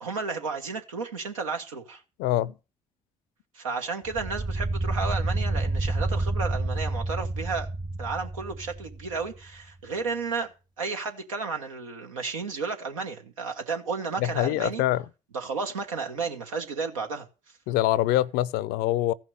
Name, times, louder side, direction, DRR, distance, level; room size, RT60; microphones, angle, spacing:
voice 1, 0.0-2.0 3.5-7.7 8.0-10.5 10.8-14.8 15.3-17.3, right 4 dB, 85° right, 1.3 m, -32 dB
voice 2, 2.2-2.5 14.2-15.0 17.7-19.1, left 15 dB, 70° left, 0.5 m, -24 dB
sound 1, 4.1-9.3, right 2 dB, 25° right, 0.9 m, -29 dB
14.5 x 5.9 x 7.6 m
hypercardioid pair, 45°, 17 cm